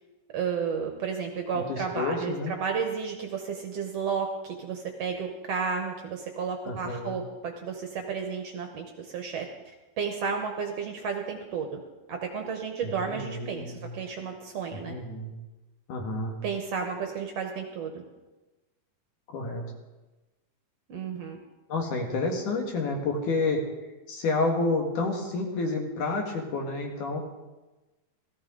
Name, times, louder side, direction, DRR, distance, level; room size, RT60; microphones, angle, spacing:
voice 1, 0.3-9.5 10.0-11.8 12.1-14.9 16.4-17.9 20.9-21.4, right 6 dB, 60° right, 3 dB, 1.8 m, -32 dB
voice 2, 1.5-2.5 6.6-7.2 12.8-13.9 14.7-15.3 15.9-16.4 19.3-19.6 21.7-23.6 24.1-27.2, left 3 dB, 70° left, 2 dB, 3.2 m, -29 dB
17.0 x 14.5 x 3.8 m, 1.1 s
omnidirectional pair, 3.8 m